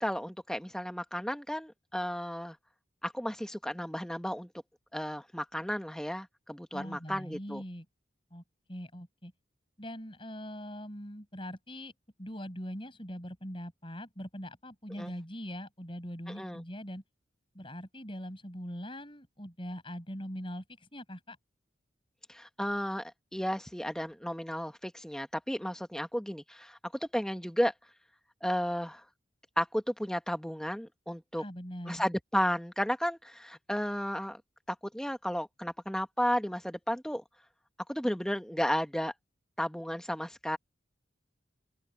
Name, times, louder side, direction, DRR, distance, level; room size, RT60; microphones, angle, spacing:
voice 1, 0.0-2.6 3.0-4.5 4.9-7.6 15.0-15.1 16.3-16.6 22.3-26.8 27.1-27.7 28.4-29.0 29.6-31.4 31.9-34.4 34.7-37.2 37.9-39.1 39.6-40.6, equal, 5° left, 1.2 m, -33 dB
voice 2, 6.7-7.9 8.3-8.4 8.7-9.3 9.8-11.9 12.2-17.0 17.5-21.4 31.4-32.0, equal, 25° left, 7.6 m, -42 dB
open air
head